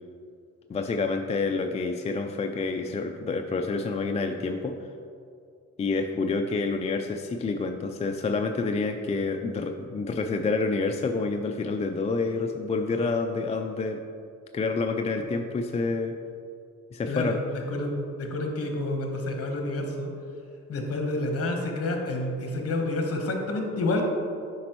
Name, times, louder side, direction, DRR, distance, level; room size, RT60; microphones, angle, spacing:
voice 1, 0.7-4.8 5.8-14.0 14.5-16.2 16.9-17.4, left 3 dB, 20° left, 4 dB, 0.3 m, -28 dB
voice 2, 17.1-20.1 20.7-24.0, left 2 dB, 50° left, 2 dB, 1.2 m, -29 dB
8.3 x 5.2 x 3.1 m, 2.5 s
cardioid pair, 90°, 30 cm